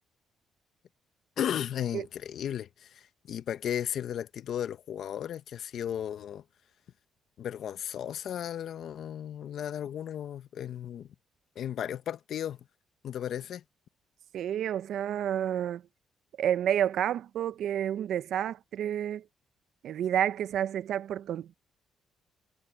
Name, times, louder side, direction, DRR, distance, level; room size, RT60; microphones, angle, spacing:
voice 1, 1.4-6.4 7.4-11.1 11.6-12.6 13.0-13.6, left 10 dB, 65° left, 0.9 m, -35 dB
voice 2, 14.3-15.8 16.4-19.2 19.8-21.5, right 10 dB, 75° right, 0.7 m, -30 dB
cardioid pair, 90°, 0 cm